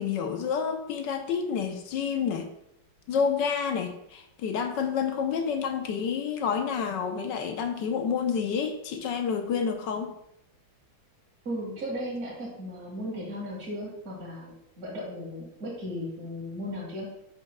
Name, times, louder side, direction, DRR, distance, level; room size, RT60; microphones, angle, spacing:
voice 1, 0.0-2.5 3.1-10.1, left 6 dB, 70° left, 6 dB, 1.3 m, -29 dB
voice 2, 11.5-17.1, equal, 45° right, -6 dB, 2.1 m, -36 dB
10.0 x 5.9 x 2.2 m, 0.79 s
omnidirectional pair, 2.2 m